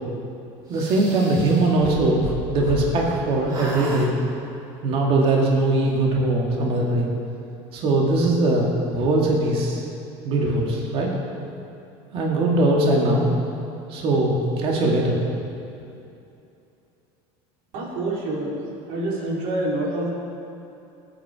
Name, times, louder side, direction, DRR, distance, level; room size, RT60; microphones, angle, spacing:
sound 1, 0.7-3.2 3.5-4.1, right 2 dB, 30° right, 3.0 m, -34 dB
voice 1, 0.7-4.1 4.8-7.1 7.7-9.8 10.2-11.1 12.1-13.3 13.9-15.2, right 2 dB, 45° right, -2 dB, 2.3 m, -21 dB
voice 2, 17.7-18.6 18.9-20.1, right 1 dB, 65° right, -3 dB, 4.0 m, -26 dB
19.5 x 9.1 x 5.0 m, 2.7 s
cardioid pair, 140°, 13 cm